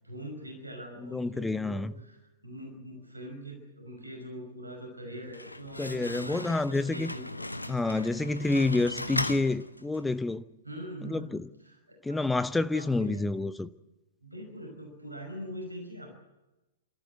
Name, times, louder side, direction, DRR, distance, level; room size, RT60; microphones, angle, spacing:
voice 1, 0.0-2.2 2.4-7.4 10.6-11.4 11.6-12.2 12.7-13.3 14.2-16.1, equal, 85° right, 5.5 m, -43 dB
voice 2, 1.0-1.9 5.8-7.1 7.7-10.4 11.0-11.5 12.0-13.7, left 3 dB, 5° left, 0.8 m, -28 dB
Slam, 5.1-10.2, left 1 dB, 85° left, 0.9 m, -37 dB
29.0 x 13.5 x 8.1 m
figure-of-eight pair, 105°, 0 cm